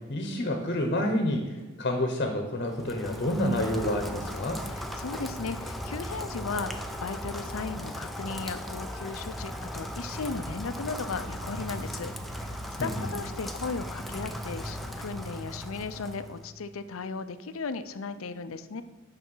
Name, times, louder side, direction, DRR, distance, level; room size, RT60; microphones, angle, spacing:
voice 1, 0.1-1.5 1.8-4.6 12.8-13.1, left 1 dB, 45° left, 5 dB, 1.1 m, -28 dB
Rain, 2.7-16.5, equal, ahead, 0.6 m, -37 dB
voice 2, 4.7-18.8, left 4 dB, 85° left, 12 dB, 0.6 m, -36 dB
9.6 x 5.8 x 5.5 m, 1.3 s
head